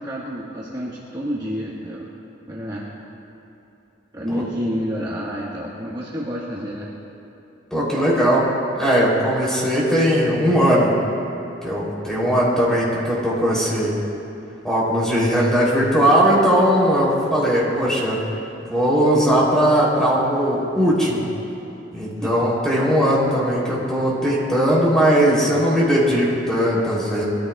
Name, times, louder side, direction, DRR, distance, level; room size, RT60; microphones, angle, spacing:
voice 1, 0.0-2.1 2.5-2.9 4.1-6.9 22.2-22.3, equal, 20° right, -7 dB, 1.5 m, -29 dB
voice 2, 7.7-8.5 8.8-10.9 11.6-13.9 14.6-18.2 18.6-21.2 21.9-27.2, equal, 5° left, -6 dB, 3.3 m, -19 dB
22.5 x 14.0 x 2.4 m, 2.9 s
head